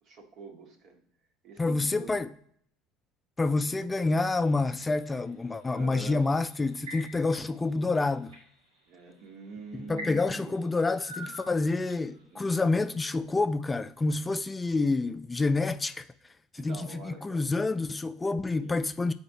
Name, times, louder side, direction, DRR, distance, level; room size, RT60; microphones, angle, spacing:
voice 1, 0.0-1.0 1.4-2.2 5.7-6.3 8.9-10.6 12.3-12.5 16.6-17.5 18.6-18.8, right 3 dB, 60° right, 1.5 m, -45 dB
voice 2, 1.6-2.3 3.4-8.3 9.9-16.0 16.5-19.1, left 3 dB, 20° left, 0.4 m, -28 dB
sound 1, 4.1-5.2 6.2-7.5 7.9-8.4 9.1-9.3 9.9-12.1, equal, 90° right, 2.3 m, -44 dB
6.8 x 4.3 x 4.1 m
hypercardioid pair, 75°, 0 cm